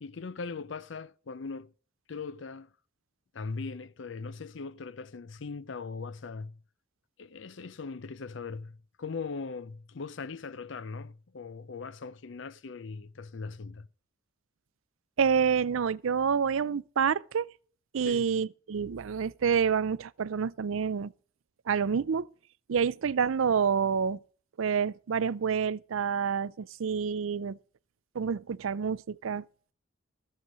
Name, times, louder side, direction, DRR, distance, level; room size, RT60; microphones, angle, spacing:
voice 1, 0.0-1.7 2.1-2.7 3.3-6.6 7.2-13.9 18.0-18.3, left 4 dB, 65° left, 0.5 m, -40 dB
voice 2, 15.2-17.5 17.9-21.1 21.7-22.3 22.7-24.2 24.6-27.6 28.2-29.4, right 6 dB, 80° right, 0.5 m, -28 dB
13.5 x 8.2 x 5.2 m
head